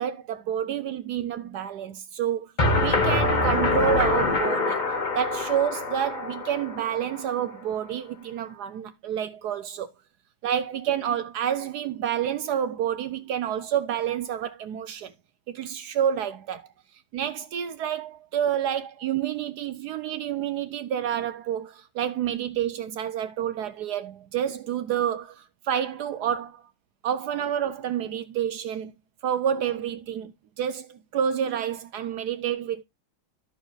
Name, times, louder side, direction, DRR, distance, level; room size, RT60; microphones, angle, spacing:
voice 1, 0.0-2.5 2.8-4.8 5.1-9.9 10.4-15.1 15.5-16.7 17.1-26.6 27.0-28.9 29.2-30.3 30.6-32.8, right 9 dB, 75° right, 0.9 m, -29 dB
sound 1, 2.6-7.5, left 2 dB, 30° left, 0.9 m, -25 dB
13.5 x 4.6 x 3.1 m
omnidirectional pair, 2.3 m